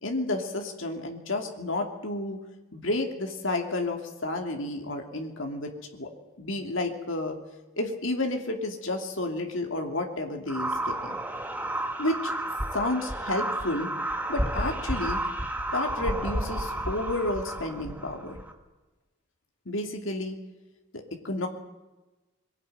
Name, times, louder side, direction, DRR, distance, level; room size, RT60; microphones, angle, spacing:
voice 1, 0.0-2.4 2.7-6.1 6.4-7.4 7.8-11.2 12.0-12.3 12.7-13.9 14.3-15.2 15.7-18.4 19.7-20.4 20.9-21.5, left 2 dB, 70° left, 3 dB, 2.8 m, -31 dB
sound 1, 10.5-18.5, right 1 dB, 10° right, 2.1 m, -31 dB
23.0 x 18.0 x 9.3 m, 1.1 s
head